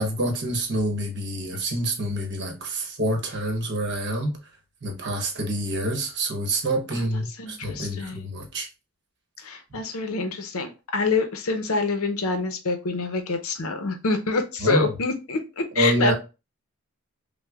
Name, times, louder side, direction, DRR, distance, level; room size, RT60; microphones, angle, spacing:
voice 1, 0.0-4.3 4.8-8.7 14.6-14.9 15.8-16.1, right 1 dB, 50° right, 0.9 m, -27 dB
voice 2, 7.4-8.3 9.4-16.1, left 4 dB, 70° left, 0.6 m, -26 dB
6.0 x 2.1 x 2.3 m
head